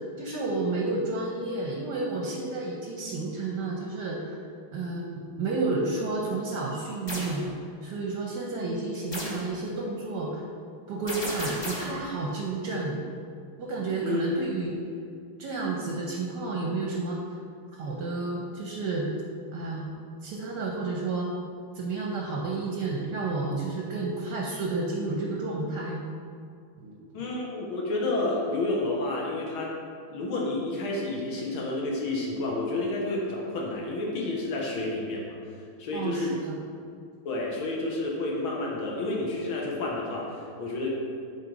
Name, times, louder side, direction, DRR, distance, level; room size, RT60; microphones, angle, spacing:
voice 1, 0.2-4.4 4.7-7.5 7.8-10.4 10.9-13.0 13.6-14.8 15.4-17.2 17.8-19.1 19.5-19.9 20.2-21.3 21.7-26.0 26.8-27.3 35.9-36.6, right 3 dB, 65° right, -1 dB, 1.2 m, -31 dB
sound 1, 7.1-7.4 9.1-9.5 11.1-12.0, left 1 dB, 35° left, 0.4 m, -34 dB
voice 2, 27.1-29.7 30.1-35.3 35.8-36.4 37.3-40.9, left 2 dB, 75° left, -3 dB, 1.8 m, -30 dB
7.2 x 4.0 x 5.0 m, 2.3 s
omnidirectional pair, 2.4 m